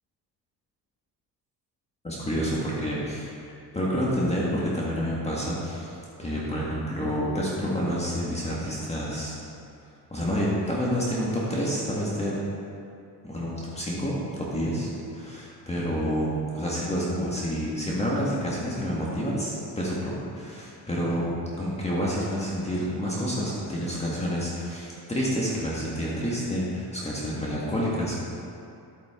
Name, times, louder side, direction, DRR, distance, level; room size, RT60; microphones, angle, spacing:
voice 1, 2.0-3.3 3.7-9.4 10.1-12.4 13.2-21.3 21.6-28.1, equal, 15° left, -6 dB, 1.8 m, -28 dB
11.5 x 9.2 x 3.8 m, 2.6 s
cardioid pair, 110°, 40 cm